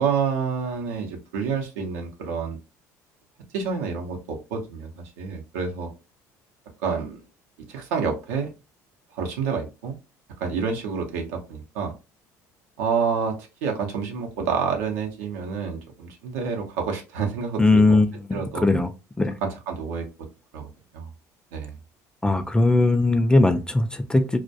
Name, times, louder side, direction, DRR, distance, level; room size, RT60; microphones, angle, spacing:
voice 1, 0.0-2.6 3.5-5.9 6.8-7.2 7.7-8.5 9.1-9.9 10.4-11.9 12.8-18.0 18.3-18.7 19.4-20.1 20.5-21.1 21.5-21.7, right 5 dB, 85° right, 0.6 m, -28 dB
voice 2, 17.6-18.9 19.2-19.4 22.2-24.4, left 2 dB, 10° left, 0.3 m, -19 dB
2.2 x 2.1 x 2.6 m
supercardioid pair, 75°, 8 cm